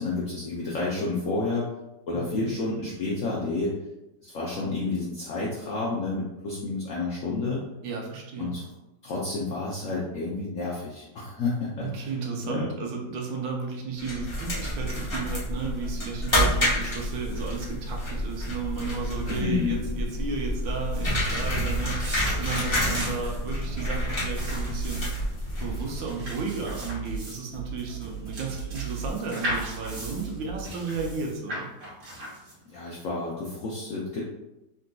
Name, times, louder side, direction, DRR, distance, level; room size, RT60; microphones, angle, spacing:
voice 1, 0.0-1.6 2.1-3.7 4.2-7.6 8.4-8.6 9.0-12.1 12.4-12.6 19.3-19.8 32.7-34.2, left 3 dB, 75° left, -5 dB, 0.7 m, -30 dB
voice 2, 2.1-2.5 7.8-8.5 11.8-22.0 22.3-25.0 25.6-31.7, right 4 dB, 85° right, 0 dB, 1.4 m, -33 dB
sound 1, 14.0-26.0, equal, 25° left, 0.5 m, -29 dB
sound 2, 20.7-32.8, equal, 60° right, 1.4 m, -38 dB
sound 3, 23.7-31.3, right 7 dB, 55° left, 1.3 m, -38 dB
3.8 x 2.5 x 2.2 m, 0.94 s
omnidirectional pair, 1.9 m